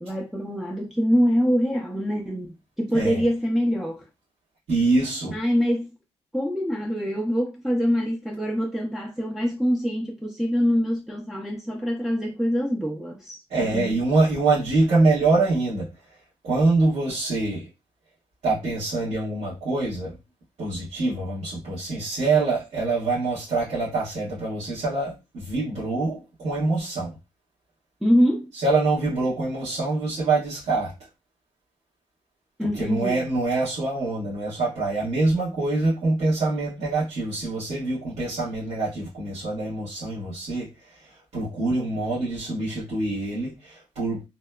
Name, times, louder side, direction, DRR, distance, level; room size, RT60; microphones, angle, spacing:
voice 1, 0.0-4.1 5.3-5.9 6.3-13.4 13.7-13.9 28.0-28.5 32.6-33.2, equal, 5° right, 0.4 m, -24 dB
voice 2, 4.7-5.4 13.5-15.9 16.4-17.7 18.4-20.1 20.6-27.1 28.6-30.9 32.6-40.7 41.3-44.2, right 3 dB, 70° right, 1.2 m, -25 dB
2.8 x 2.1 x 2.2 m
cardioid pair, 95°, 12 cm